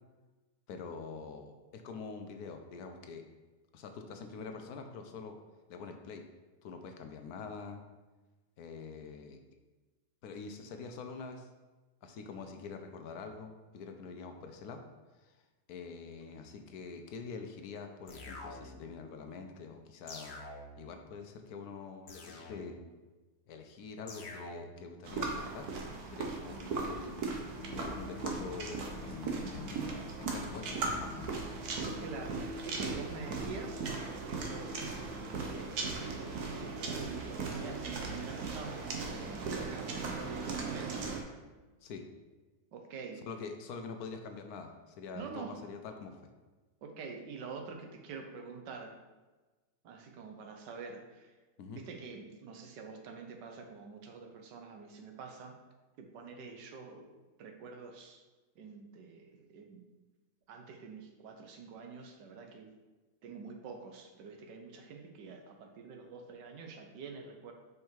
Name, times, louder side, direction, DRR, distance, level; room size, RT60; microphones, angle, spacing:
voice 1, 0.7-3.2 3.7-5.4 5.7-6.2 6.6-7.8 8.6-9.4 10.2-11.5 12.0-14.8 15.2-15.3 15.7-20.4 20.8-22.8 23.5-25.7 26.1-27.2 27.7-29.9 30.2-31.3 41.8-42.0 43.3-46.2 51.6-51.8, left 5 dB, 70° left, 5 dB, 1.1 m, -45 dB
sound 1, 18.1-19.0 20.1-21.0 22.1-23.0 24.1-25.0, left 2 dB, 50° left, 0.9 m, -47 dB
sound 2, 25.0-41.2, right 4 dB, 65° right, 1.4 m, -38 dB
sound 3, 27.5-41.9, left 1 dB, 35° left, 1.6 m, -49 dB
voice 2, 32.0-41.1 42.7-43.3 45.1-45.6 46.8-49.0 49.8-51.3 51.7-55.6 56.0-57.1 57.4-58.2 58.5-59.9 60.5-62.7 63.2-67.5, right 4 dB, 85° right, 4 dB, 1.5 m, -47 dB
5.4 x 5.1 x 4.5 m, 1.2 s
omnidirectional pair, 1.8 m